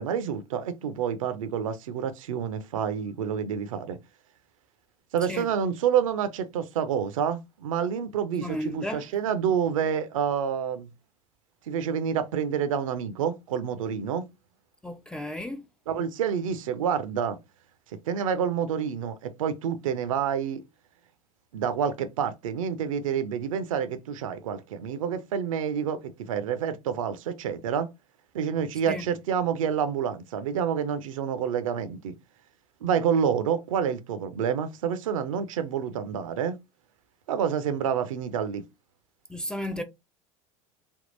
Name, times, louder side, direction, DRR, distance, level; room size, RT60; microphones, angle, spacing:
voice 1, 0.0-4.0 5.1-10.9 11.7-14.2 15.9-17.4 18.1-20.6 21.5-27.9 28.3-32.1 32.8-36.6 37.3-38.6, right 8 dB, 65° right, 0.5 m, -28 dB
voice 2, 8.4-9.0 14.8-15.7 28.9-29.1 39.3-39.8, left 1 dB, 5° left, 0.4 m, -33 dB
3.5 x 2.4 x 2.5 m
figure-of-eight pair, 75°, 18 cm